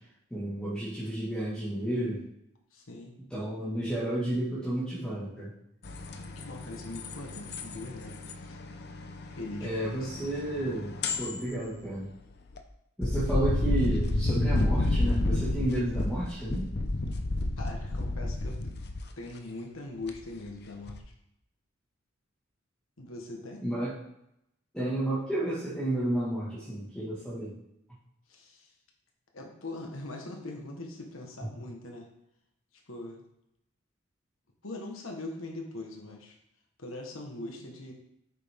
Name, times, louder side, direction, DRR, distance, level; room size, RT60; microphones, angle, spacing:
voice 1, 0.3-2.2 3.3-5.5 9.6-12.1 13.0-16.7 23.6-24.0 24.7-27.5, right 1 dB, 5° left, -11 dB, 2.0 m, -31 dB
voice 2, 2.7-3.1 6.3-8.6 9.3-9.7 10.0-10.3 17.6-18.6 19.2-21.0 23.0-23.6 28.3-28.7 29.3-32.1 32.7-33.2 34.6-36.4 36.8-37.9, left 2 dB, 75° left, 1 dB, 1.5 m, -41 dB
sound 1, 5.8-12.6 13.0-19.1 20.1-20.5 20.9-21.0, left 2 dB, 55° left, 0.8 m, -31 dB
8.5 x 6.7 x 3.7 m, 0.81 s
head